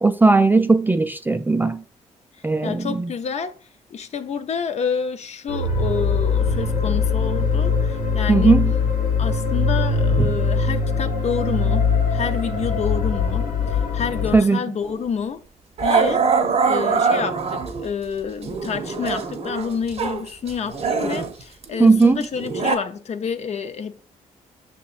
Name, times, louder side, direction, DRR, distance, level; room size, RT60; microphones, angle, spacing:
voice 1, 0.0-1.8 2.4-3.1 8.3-8.7 10.2-10.3 14.3-14.6 21.8-22.2, right 3 dB, 15° right, 0.3 m, -17 dB
voice 2, 2.6-3.6 3.9-8.6 9.2-15.4 15.8-16.3 16.6-24.0, left 6 dB, 50° left, 0.5 m, -28 dB
sound 1, 5.5-14.4, left 4 dB, 80° left, 0.8 m, -21 dB
Growling, 14.8-15.0 15.8-17.9 18.4-20.2 20.5-22.8, right 5 dB, 45° right, 0.7 m, -23 dB
5.9 x 2.9 x 2.4 m
supercardioid pair, 55°, 14 cm